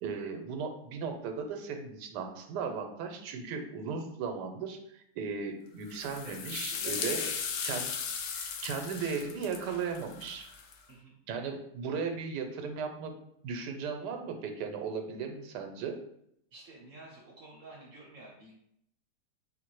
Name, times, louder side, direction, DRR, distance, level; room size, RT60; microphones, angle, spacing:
voice 1, 0.0-7.2 7.6-7.9 8.3-10.5 11.3-13.1 13.4-16.0, right 5 dB, 80° right, 5 dB, 1.2 m, -36 dB
sound 1, 5.9-10.7, left 6 dB, 80° left, 0.6 m, -37 dB
voice 2, 6.2-7.3 10.9-11.2 16.5-18.6, right 2 dB, 60° right, -2 dB, 1.0 m, -49 dB
3.8 x 2.5 x 4.5 m, 0.74 s
omnidirectional pair, 1.8 m